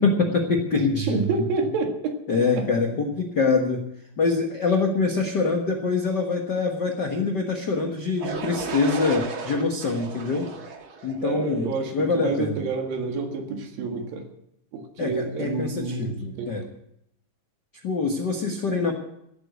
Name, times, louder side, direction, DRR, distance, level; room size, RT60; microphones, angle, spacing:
voice 1, 0.0-1.2 2.3-3.8 4.2-10.5 11.0-12.6 15.0-16.6 17.8-18.9, left 4 dB, 85° left, 3 dB, 0.9 m, -24 dB
voice 2, 0.7-2.2 2.6-2.7 11.2-14.3 14.7-16.1 16.4-16.6, right 4 dB, 70° right, 4 dB, 3.5 m, -28 dB
sound 1, 8.2-12.1, right 5 dB, 50° right, 1.7 m, -35 dB
16.0 x 8.2 x 8.1 m, 0.77 s
omnidirectional pair, 4.3 m